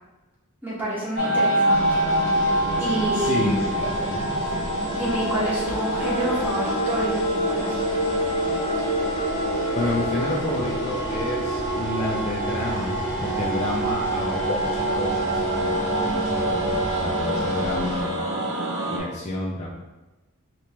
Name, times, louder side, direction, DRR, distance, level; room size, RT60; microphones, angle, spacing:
voice 1, 0.6-2.0 2.8-3.6 4.9-7.8, right 1 dB, 10° right, -8 dB, 1.0 m, -28 dB
sound 1, 1.1-19.0, right 1 dB, 55° right, 0.7 m, -25 dB
sound 2, 1.7-18.0, left 1 dB, 85° left, 0.7 m, -37 dB
voice 2, 3.1-4.6 9.7-18.2 18.9-19.7, left 1 dB, 30° left, -5 dB, 0.4 m, -30 dB
3.0 x 2.9 x 3.3 m, 1.1 s
head